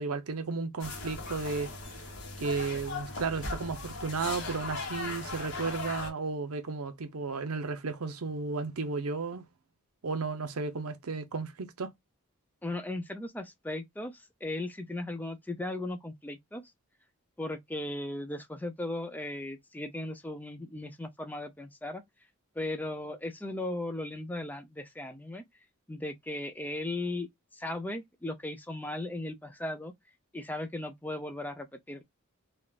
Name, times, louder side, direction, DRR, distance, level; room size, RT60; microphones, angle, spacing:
voice 1, 0.0-1.7 2.4-9.4 10.0-11.9, right 4 dB, 80° right, 0.7 m, -34 dB
sound 1, 0.8-6.1, left 3 dB, 55° left, 1.4 m, -38 dB
voice 2, 12.6-16.6 17.4-22.0 22.6-25.4 25.9-27.3 27.5-29.9 30.3-32.0, left 1 dB, 10° left, 0.4 m, -37 dB
3.5 x 2.4 x 2.3 m
head